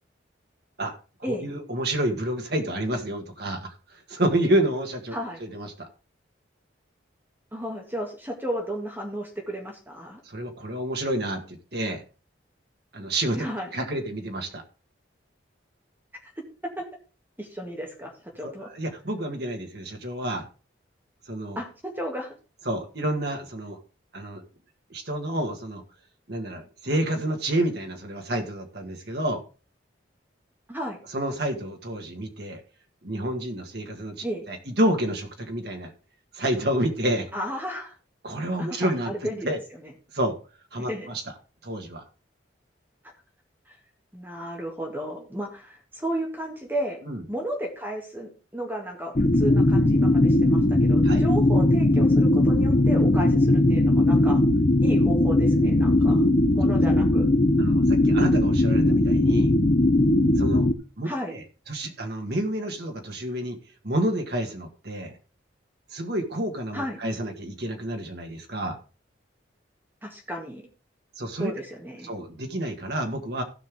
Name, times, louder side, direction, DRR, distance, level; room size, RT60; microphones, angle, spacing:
voice 1, 0.8-5.9 10.3-12.0 12.9-13.4 13.7-14.6 18.4-20.5 21.3-21.6 22.7-23.8 24.1-24.4 24.9-25.8 26.3-29.4 31.1-32.6 33.0-35.9 36.3-37.3 38.2-39.6 40.1-40.4 40.7-41.2 41.6-42.0 47.0-47.2 51.0-51.2 56.0-56.3 57.6-59.5 60.4-60.7 61.0-63.6 63.8-65.1 65.9-68.8 71.2-71.5 72.0-73.4, right 1 dB, 55° right, 3 dB, 1.8 m, -29 dB
voice 2, 7.5-10.2 13.4-13.7 16.8-16.9 17.4-18.7 21.6-22.3 30.7-31.0 34.2-34.5 37.3-38.0 38.6-39.5 40.9-41.1 43.7-43.8 44.1-47.0 47.3-54.4 54.8-56.2 56.5-57.3 61.0-61.3 66.7-67.0 70.0-70.6 71.4-72.1, equal, 10° right, 1 dB, 1.9 m, -33 dB
sound 1, 49.2-60.7, left 1 dB, 35° left, 0.7 m, -19 dB
16.0 x 5.6 x 3.6 m, 0.34 s
head